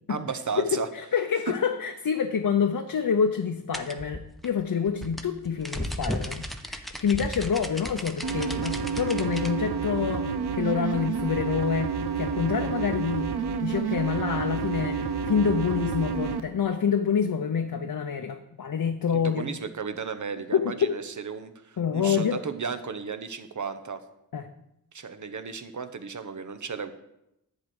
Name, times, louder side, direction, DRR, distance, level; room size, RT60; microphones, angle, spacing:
voice 1, 0.1-0.9 19.1-24.0 24.9-26.9, right 5 dB, 50° right, 9 dB, 1.0 m, -34 dB
voice 2, 0.7-13.3 13.6-19.5 20.5-20.9 21.8-22.4 24.3-24.5, left 7 dB, 60° left, 5 dB, 0.8 m, -27 dB
sound 1, 3.7-9.5, equal, ahead, 0.9 m, -35 dB
sound 2, 8.2-16.4, right 6 dB, 80° right, 0.7 m, -29 dB
10.5 x 4.5 x 8.0 m, 0.84 s
cardioid pair, 65°, 38 cm